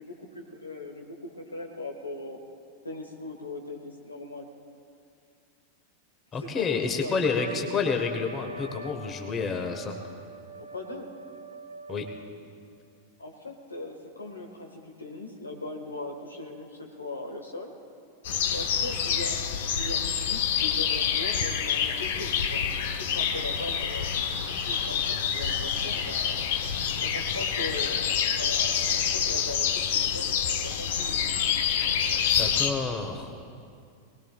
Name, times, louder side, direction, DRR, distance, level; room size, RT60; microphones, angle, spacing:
voice 1, 0.0-2.4 2.8-4.5 6.4-7.8 10.7-11.1 13.2-17.7 18.5-19.4 19.7-22.6 23.0-26.4 27.0-31.2, left 2 dB, 80° left, 3 dB, 1.6 m, -39 dB
voice 2, 6.3-9.9 11.9-12.0 32.4-33.3, left 5 dB, 25° left, 4 dB, 1.4 m, -29 dB
Trumpet, 7.4-12.4, right 1 dB, 80° right, 0.7 m, -43 dB
sound 1, 18.2-32.7, left 8 dB, 55° left, 0.9 m, -27 dB
22.5 x 19.5 x 2.4 m, 2.4 s
figure-of-eight pair, 90°, 0 cm